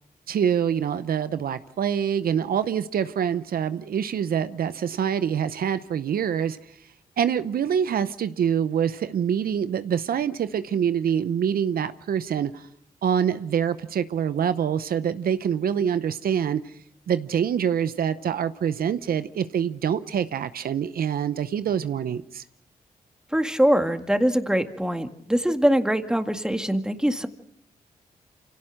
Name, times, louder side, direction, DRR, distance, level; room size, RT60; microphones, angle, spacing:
voice 1, 0.3-6.6 7.2-12.7 13.0-16.6 17.1-22.4, right 8 dB, 75° right, 0.8 m, -25 dB
voice 2, 23.3-27.3, equal, 5° right, 2.0 m, -23 dB
26.0 x 17.0 x 6.5 m
cardioid pair, 55°, 15 cm